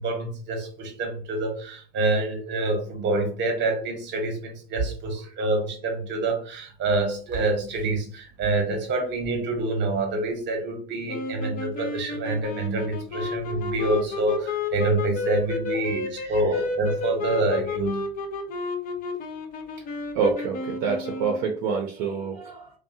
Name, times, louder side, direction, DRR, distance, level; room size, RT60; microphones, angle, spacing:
voice 1, 0.0-18.0, right 2 dB, 35° right, 4 dB, 0.9 m, -27 dB
sound 1, 11.1-21.6, left 4 dB, 30° left, 0.4 m, -32 dB
voice 2, 20.1-22.7, right 5 dB, 60° right, 1 dB, 0.6 m, -27 dB
2.6 x 2.2 x 2.6 m, 0.41 s
hypercardioid pair, 100°, 30 cm